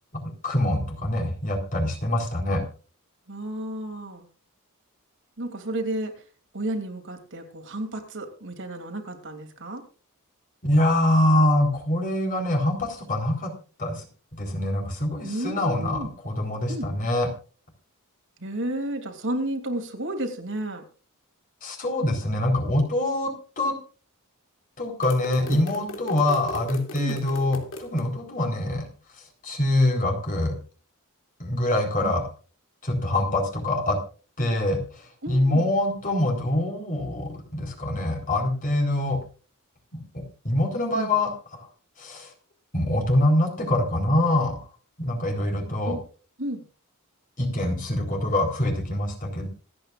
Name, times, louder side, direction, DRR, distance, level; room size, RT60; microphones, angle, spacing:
voice 1, 0.4-2.7 10.6-13.5 13.8-14.1 14.4-17.3 21.6-23.7 24.8-28.9 29.4-30.6 31.4-32.2 32.8-34.0 34.4-39.2 39.9-41.7 42.0-42.3 42.7-44.6 45.0-46.0 47.4-49.5, left 1 dB, 40° left, 2 dB, 4.2 m, -24 dB
voice 2, 3.3-4.3 5.4-6.1 6.5-9.8 15.2-16.2 16.7-16.9 18.4-20.8 25.4-25.6 27.0-27.2 32.0-32.2 35.2-35.7 40.9-41.1 45.8-46.0 46.4-46.6, right 1 dB, 60° right, 5 dB, 2.9 m, -32 dB
sound 1, 25.0-28.0, left 1 dB, 65° left, 2.7 m, -38 dB
26.0 x 9.1 x 2.5 m, 0.37 s
head